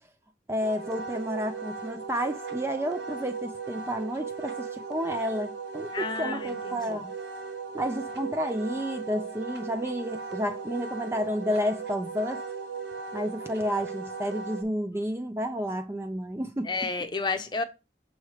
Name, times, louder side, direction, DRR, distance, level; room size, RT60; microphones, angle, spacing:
voice 1, 0.5-7.1 7.7-12.4 13.1-16.7, equal, 15° right, 0.4 m, -31 dB
Wind instrument woodwind instrument, 0.6-14.6, right 5 dB, 70° right, 0.8 m, -37 dB
voice 2, 5.9-7.0 16.6-17.6, left 4 dB, 25° left, 0.7 m, -31 dB
6.4 x 3.2 x 4.8 m
head